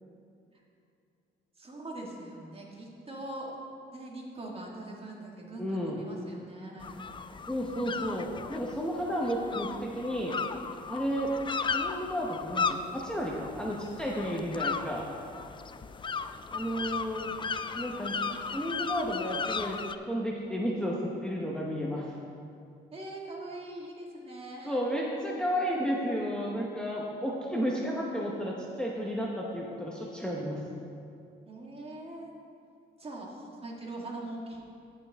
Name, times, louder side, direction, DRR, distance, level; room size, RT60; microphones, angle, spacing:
voice 1, 1.6-3.5 3.9-7.1 22.9-24.8 31.5-32.3 33.0-34.6, right 2 dB, 30° right, -2 dB, 1.8 m, -42 dB
voice 2, 5.5-6.0 7.5-10.4 10.9-11.4 11.7-15.1 16.5-17.3 17.7-18.2 18.5-19.8 20.1-22.1 24.6-30.6, equal, 5° left, -3 dB, 1.0 m, -32 dB
sound 1, 6.8-19.9, left 5 dB, 25° left, 0.4 m, -36 dB
15.0 x 5.6 x 3.5 m, 2.5 s
cardioid pair, 90°, 20 cm